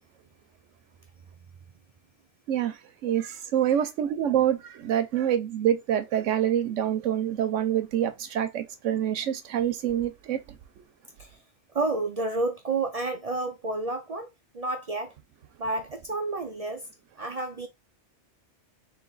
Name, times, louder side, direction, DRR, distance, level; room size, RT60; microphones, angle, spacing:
voice 1, 3.0-10.4, right 10 dB, 90° right, 1.1 m, -26 dB
voice 2, 11.7-14.3 14.5-15.1 15.6-16.8 17.2-17.7, right 2 dB, 55° right, 0.4 m, -30 dB
3.4 x 3.3 x 3.9 m
omnidirectional pair, 1.2 m